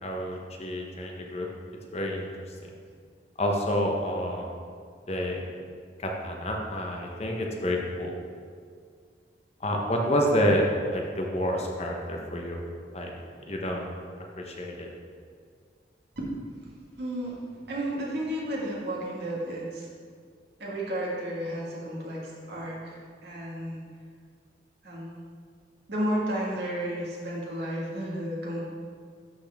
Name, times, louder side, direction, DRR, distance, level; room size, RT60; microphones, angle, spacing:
voice 1, 0.0-1.5 1.9-2.3 3.4-4.5 5.1-5.4 6.0-8.1 9.6-12.6 12.9-13.1 13.5-13.9 14.4-14.9, equal, 35° left, 0 dB, 0.8 m, -28 dB
voice 2, 17.0-19.9 20.6-23.8 24.8-25.2 25.9-28.6, right 1 dB, 65° right, -5 dB, 1.7 m, -32 dB
11.5 x 4.2 x 3.5 m, 2.1 s
head